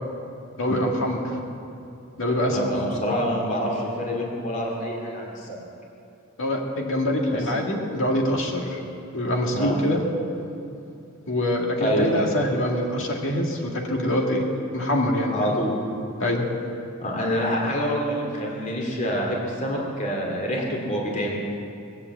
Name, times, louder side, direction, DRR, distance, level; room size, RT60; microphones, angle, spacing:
voice 1, 0.6-1.4 2.2-3.0 6.4-8.8 9.1-10.0 11.3-14.4 14.7-15.5 16.2-16.4, left 1 dB, 65° left, 0 dB, 2.0 m, -24 dB
voice 2, 2.5-5.6 7.3-7.4 9.5-9.7 11.8-12.2 15.3-15.7 17.0-21.4, equal, 35° left, -2 dB, 2.5 m, -26 dB
20.0 x 8.0 x 8.0 m, 2.7 s
head